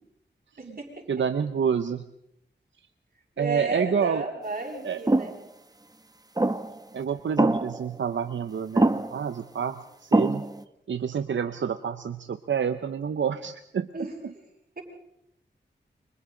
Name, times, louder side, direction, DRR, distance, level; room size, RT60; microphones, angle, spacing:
voice 1, 1.1-2.0 3.4-4.3 4.8-5.2 6.9-10.4 10.9-14.3, right 7 dB, 85° right, 9 dB, 0.8 m, -28 dB
voice 2, 3.4-5.3 13.9-14.1 14.8-14.9, right 3 dB, 50° right, -1 dB, 6.5 m, -32 dB
sound 1, 5.1-5.4 6.4-6.8 7.4-7.9 8.8-9.3 10.1-10.6, right 2 dB, 20° right, 0.9 m, -23 dB
29.5 x 25.5 x 3.9 m, 0.78 s
wide cardioid pair, 75°, 19 cm